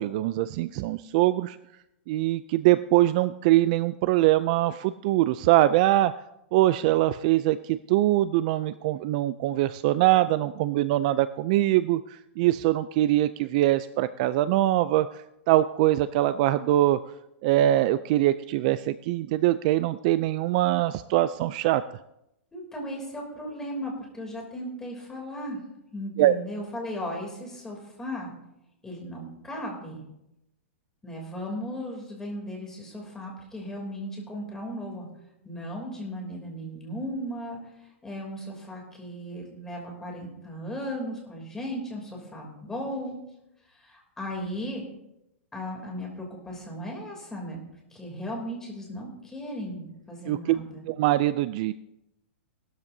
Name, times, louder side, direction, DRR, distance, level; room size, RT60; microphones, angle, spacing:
voice 1, 0.0-1.6 2.1-6.1 6.5-17.0 17.4-21.8 26.2-26.3 50.3-50.4 50.9-51.7, right 15 dB, 40° right, 14 dB, 0.3 m, -23 dB
voice 2, 22.5-25.6 25.9-28.3 28.8-30.0 31.0-35.1 35.4-43.2 43.7-44.8 45.5-47.6 47.9-50.9, equal, 5° left, 0 dB, 3.0 m, -36 dB
18.5 x 12.5 x 2.7 m, 0.86 s
hypercardioid pair, 160°, 7 cm